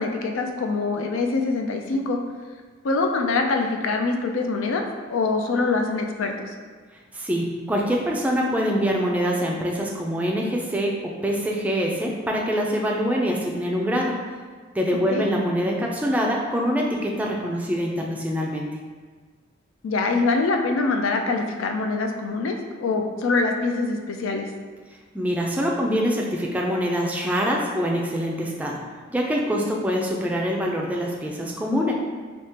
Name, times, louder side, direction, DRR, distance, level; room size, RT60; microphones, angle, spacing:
voice 1, 0.0-2.2 2.8-4.8 5.1-6.5 15.1-15.2 19.8-24.5, left 3 dB, 80° left, 3 dB, 0.4 m, -24 dB
voice 2, 7.1-14.2 14.7-18.7 25.1-28.8 29.1-31.9, equal, 5° right, -1 dB, 0.3 m, -24 dB
3.5 x 2.8 x 2.8 m, 1.5 s
head